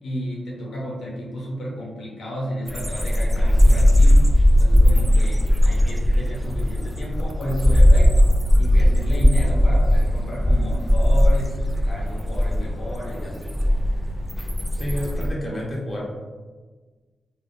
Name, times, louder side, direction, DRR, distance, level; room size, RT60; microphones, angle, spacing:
voice 1, 0.0-4.3 4.6-13.6, equal, 75° left, -4 dB, 0.7 m, -32 dB
sound 1, 2.7-15.3, equal, 5° right, 0.4 m, -18 dB
voice 2, 14.8-16.0, equal, 25° left, -5 dB, 0.9 m, -29 dB
3.4 x 2.2 x 2.6 m, 1.4 s
cardioid pair, 85°, 0 cm